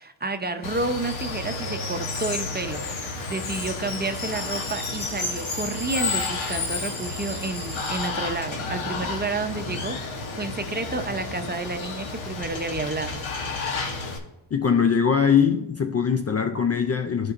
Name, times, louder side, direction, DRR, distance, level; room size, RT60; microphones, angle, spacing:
voice 1, 0.0-13.2, right 3 dB, 20° right, 0.6 m, -30 dB
Water, 0.6-14.2, left 3 dB, 80° left, 1.2 m, -31 dB
sound 1, 4.1-8.1, right 1 dB, 15° left, 1.8 m, -38 dB
voice 2, 14.5-17.3, left 7 dB, 35° left, 0.4 m, -21 dB
12.5 x 5.2 x 2.5 m
cardioid pair, 85°, 47 cm